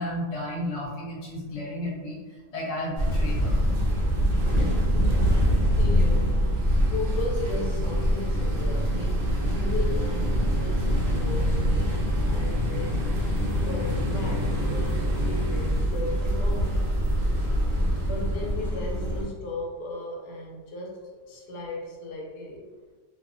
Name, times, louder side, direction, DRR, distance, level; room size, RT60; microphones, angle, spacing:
voice 1, 0.0-2.2 2.5-3.6, left 1 dB, 50° left, -6 dB, 0.4 m, -32 dB
sound 1, 3.0-19.2, equal, 75° right, 0.5 m, -24 dB
voice 2, 4.5-6.5 6.9-13.1 13.3-16.8 17.9-22.7, left 2 dB, 80° left, -2 dB, 1.2 m, -36 dB
2.7 x 2.3 x 2.4 m, 1.4 s
omnidirectional pair, 1.7 m